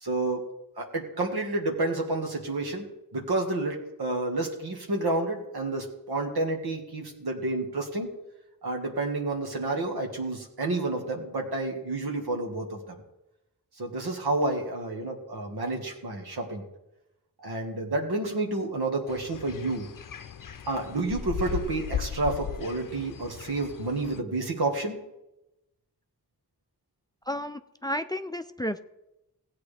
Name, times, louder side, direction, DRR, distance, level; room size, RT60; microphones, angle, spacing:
voice 1, 0.0-0.4 0.8-2.9 3.1-8.1 8.6-13.0 13.8-16.6 17.4-19.9 20.7-25.0, right 2 dB, 80° right, 1 dB, 1.8 m, -30 dB
sound 1, 19.1-24.2, left 8 dB, 60° left, 0.6 m, -37 dB
voice 2, 27.3-28.8, equal, 10° left, 9 dB, 0.5 m, -32 dB
16.5 x 8.3 x 3.4 m, 0.93 s
cardioid pair, 45°, 38 cm